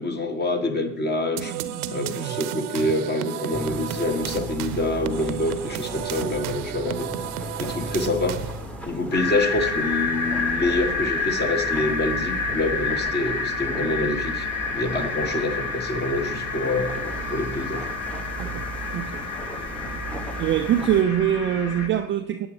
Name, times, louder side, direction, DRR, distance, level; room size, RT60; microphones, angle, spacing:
voice 1, 0.0-1.6 1.9-7.1 7.6-8.4 8.8-17.9, left 2 dB, 20° left, 7 dB, 1.5 m, -26 dB
sound 1, 1.4-8.7, right 11 dB, 65° right, 0.9 m, -33 dB
sound 2, 3.5-21.0, right 1 dB, 5° left, 1.2 m, -37 dB
sound 3, 9.1-21.9, left 4 dB, 35° left, 1.6 m, -29 dB
voice 2, 20.4-22.5, right 10 dB, 25° right, 6 dB, 0.5 m, -23 dB
19.0 x 8.9 x 3.3 m, 0.88 s
hypercardioid pair, 80°, 47 cm